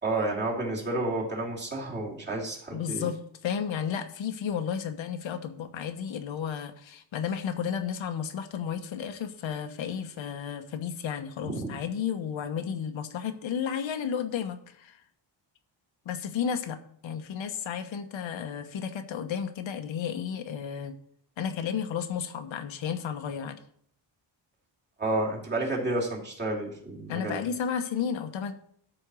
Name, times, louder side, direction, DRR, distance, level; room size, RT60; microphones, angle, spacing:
voice 1, 0.0-3.1 11.4-11.7 25.0-27.5, right 2 dB, 20° right, -3 dB, 2.8 m, -30 dB
voice 2, 2.7-15.0 16.0-16.8 17.0-20.9 21.4-23.6 27.1-28.5, left 7 dB, 75° left, 7 dB, 1.1 m, -33 dB
13.0 x 4.4 x 6.2 m, 0.64 s
wide cardioid pair, 170°, 46 cm